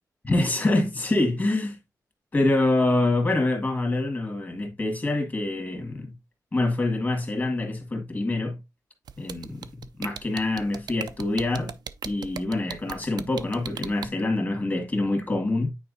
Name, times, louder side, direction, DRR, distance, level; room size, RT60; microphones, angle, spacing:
voice 1, 0.2-1.8 2.3-6.1 6.5-8.6 9.2-11.8 12.0-15.7, left 2 dB, 25° left, 1.8 m, -25 dB
sound 1, 9.1-14.1, right 8 dB, 90° right, 0.5 m, -36 dB
9.3 x 4.4 x 2.6 m
wide cardioid pair, 155°, 7 cm